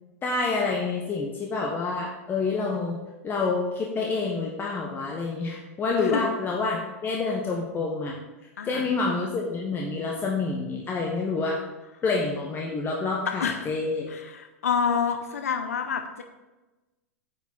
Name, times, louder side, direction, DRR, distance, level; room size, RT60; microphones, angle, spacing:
voice 1, 0.2-3.0 3.2-8.2 8.6-11.6 12.0-14.1, left 3 dB, 25° left, -1 dB, 1.3 m, -28 dB
voice 2, 8.6-8.9 13.4-13.7 14.1-16.2, left 6 dB, 80° left, 6 dB, 0.7 m, -28 dB
9.2 x 5.9 x 4.1 m, 1.1 s
hypercardioid pair, 95°, 8 cm